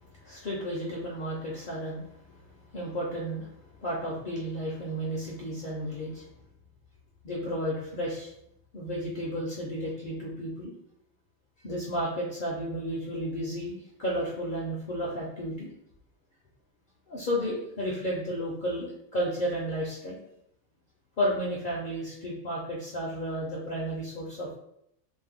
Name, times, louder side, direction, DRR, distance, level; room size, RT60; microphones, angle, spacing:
voice 1, 0.2-2.4 2.7-3.5 3.8-6.3 7.2-8.3 8.7-10.7 11.6-15.7 17.1-20.2 21.2-24.5, equal, 55° left, -5 dB, 0.6 m, -32 dB
2.6 x 2.1 x 3.4 m, 0.75 s
omnidirectional pair, 1.4 m